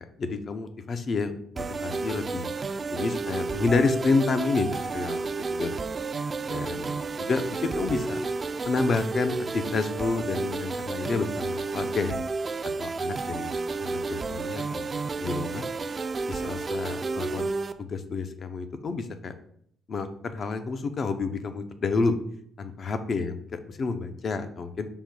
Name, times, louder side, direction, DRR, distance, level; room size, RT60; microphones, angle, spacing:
voice 1, 0.2-2.5 2.9-5.2 5.5-5.8 6.5-8.3 8.6-12.2 12.6-13.5 13.8-14.9 15.2-15.7 16.3-17.5 17.8-19.4 19.9-22.2 22.6-24.9, left 4 dB, 50° left, 9 dB, 0.5 m, -29 dB
sound 1, 1.6-17.7, right 4 dB, 35° right, 0.3 m, -31 dB
5.3 x 2.2 x 4.6 m, 0.67 s
cardioid pair, 90°, 0 cm